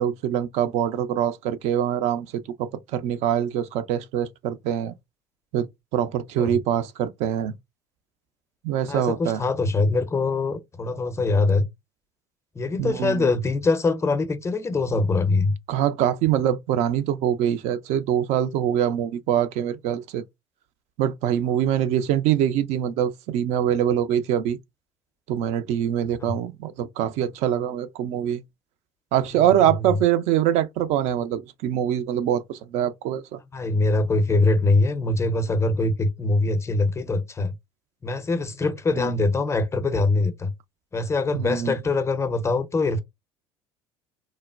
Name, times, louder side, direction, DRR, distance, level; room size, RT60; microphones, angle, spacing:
voice 1, 0.0-4.9 5.5-7.5 8.6-9.4 12.8-13.3 15.7-20.2 21.0-24.6 25.3-28.4 29.1-33.4 39.0-39.2 41.3-41.7, right 10 dB, 55° right, 0.4 m, -24 dB
voice 2, 8.9-11.7 12.6-15.5 26.2-26.3 29.3-29.5 29.8-29.9 33.5-37.5 38.0-40.5 40.9-43.0, left 3 dB, 20° left, 0.5 m, -23 dB
3.0 x 2.1 x 2.3 m
hypercardioid pair, 65°, 13 cm